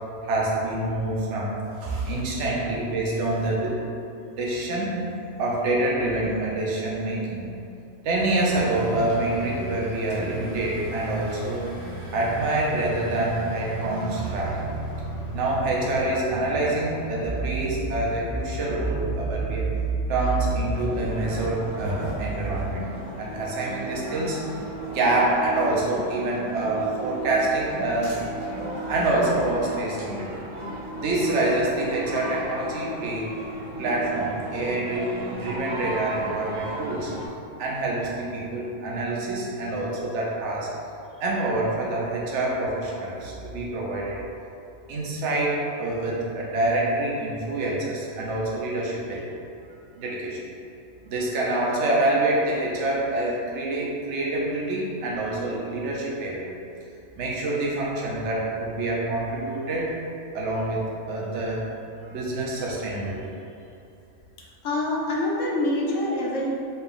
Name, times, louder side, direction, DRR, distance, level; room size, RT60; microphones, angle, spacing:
voice 1, 0.2-1.5 1.8-3.7 4.3-4.9 5.4-7.5 8.0-11.6 12.1-14.7 15.3-19.7 20.1-22.9 23.2-24.4 24.8-28.2 28.9-30.3 30.9-33.3 33.8-37.1 37.6-40.7 41.2-44.2 44.9-49.2 50.0-50.4 51.0-56.5 57.2-59.9 60.3-61.6 62.1-63.2, right 2 dB, 60° right, -4 dB, 1.0 m, -26 dB
sound 1, 8.2-18.0, right 1 dB, 35° left, 0.9 m, -36 dB
sound 2, 17.2-22.7, right 4 dB, 85° left, 1.4 m, -30 dB
sound 3, 20.4-37.3, right 1 dB, 30° right, 0.6 m, -35 dB
voice 2, 64.6-66.5, left 1 dB, 70° left, -4 dB, 0.9 m, -25 dB
4.2 x 2.3 x 3.5 m, 2.7 s
omnidirectional pair, 1.5 m